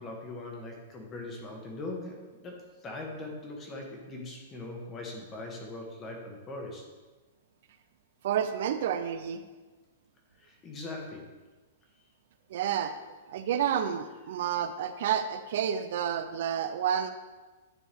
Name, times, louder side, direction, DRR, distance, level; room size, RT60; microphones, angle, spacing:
voice 1, 0.0-6.8 10.4-11.3, left 2 dB, 20° left, 1 dB, 1.3 m, -41 dB
voice 2, 8.2-9.4 12.5-12.9 13.3-17.1, right 9 dB, 55° right, 9 dB, 0.4 m, -30 dB
10.0 x 4.6 x 3.5 m, 1.2 s
hypercardioid pair, 165°, 0 cm